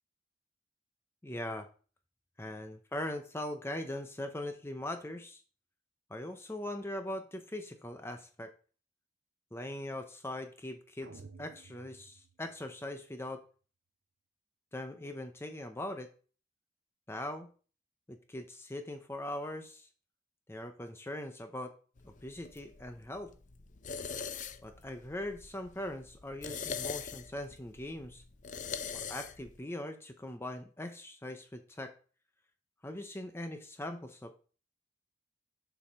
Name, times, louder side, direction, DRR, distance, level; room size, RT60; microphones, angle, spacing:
voice 1, 1.2-1.7 2.4-5.4 6.1-8.5 9.5-13.4 14.7-16.1 17.1-17.5 18.1-19.9 20.5-21.7 22.0-23.3 24.6-28.2 29.1-31.9 32.8-34.3, left 1 dB, 15° left, 6 dB, 0.7 m, -41 dB
sound 1, 11.0-13.1, right 4 dB, 80° right, 0.7 m, -54 dB
sound 2, 22.0-29.6, left 6 dB, 45° left, 0.6 m, -43 dB
7.2 x 4.8 x 5.5 m, 0.38 s
head